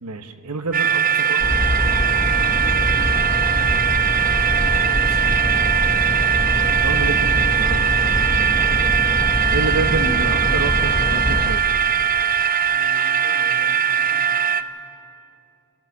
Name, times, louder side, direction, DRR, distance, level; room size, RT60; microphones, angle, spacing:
voice 1, 0.0-1.4 6.2-6.5 6.8-8.2 9.5-11.7, right 3 dB, 80° right, 7 dB, 1.2 m, -28 dB
sound 1, 0.7-14.6, right 8 dB, 40° right, 0.6 m, -20 dB
voice 2, 1.1-1.4 1.8-3.9 4.6-5.9 8.4-9.0 10.2-10.3 12.7-14.3, left 1 dB, 75° left, -1 dB, 3.6 m, -42 dB
sound 2, 1.4-11.5, left 1 dB, 25° left, 1.2 m, -24 dB
28.5 x 14.0 x 6.8 m, 2.7 s
head